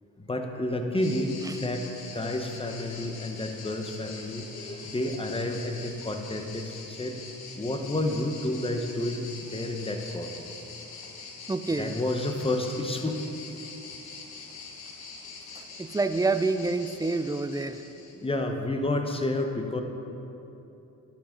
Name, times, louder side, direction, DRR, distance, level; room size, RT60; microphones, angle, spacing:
voice 1, 0.2-7.2 7.6-10.4 11.8-13.2 18.1-19.8, left 1 dB, 15° left, 4 dB, 0.9 m, -30 dB
sound 1, 1.0-18.3, left 4 dB, 90° left, 1.1 m, -44 dB
voice 2, 11.5-11.9 15.8-17.8, right 3 dB, 10° right, 10 dB, 0.3 m, -27 dB
11.5 x 7.4 x 3.8 m, 3.0 s
cardioid pair, 75°, 36 cm